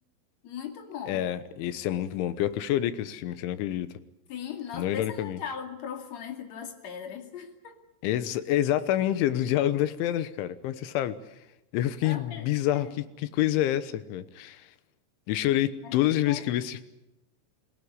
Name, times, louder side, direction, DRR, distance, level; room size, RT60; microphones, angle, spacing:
voice 1, 0.4-1.3 4.3-7.8 12.0-12.5 12.7-12.9 15.8-15.9 16.3-16.4, left 8 dB, 45° left, 4 dB, 3.1 m, -38 dB
voice 2, 1.1-3.9 4.7-5.4 8.0-11.2 11.7-14.7 15.3-16.8, left 12 dB, 80° left, 13 dB, 3.5 m, -27 dB
25.0 x 17.5 x 9.8 m, 0.92 s
omnidirectional pair, 5.4 m